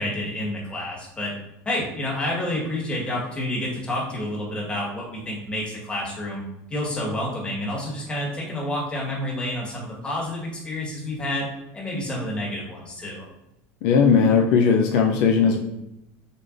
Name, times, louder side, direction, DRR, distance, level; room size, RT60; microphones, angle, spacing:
voice 1, 0.0-1.3 1.6-6.4 6.7-13.3, left 1 dB, 15° left, -4 dB, 1.6 m, -29 dB
voice 2, 13.8-15.6, left 6 dB, 70° left, 1 dB, 0.6 m, -18 dB
6.7 x 2.5 x 2.6 m, 0.85 s
supercardioid pair, 115°, 7 cm